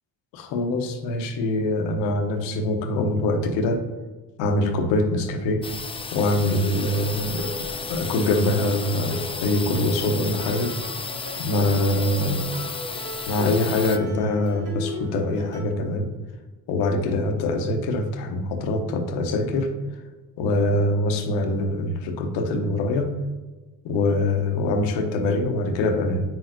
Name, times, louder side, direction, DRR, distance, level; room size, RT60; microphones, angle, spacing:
voice 1, 0.3-3.8 4.4-5.6 6.1-7.5 7.9-10.7 11.4-12.4 13.3-16.1 16.7-19.7 20.4-23.1 23.8-26.2, left 2 dB, 75° left, 5 dB, 0.9 m, -24 dB
sound 1, 5.6-14.0, left 4 dB, 15° left, 0.4 m, -33 dB
sound 2, 7.2-15.6, left 1 dB, 60° right, 1.7 m, -37 dB
7.0 x 6.0 x 2.6 m, 1.2 s
hypercardioid pair, 60°, 44 cm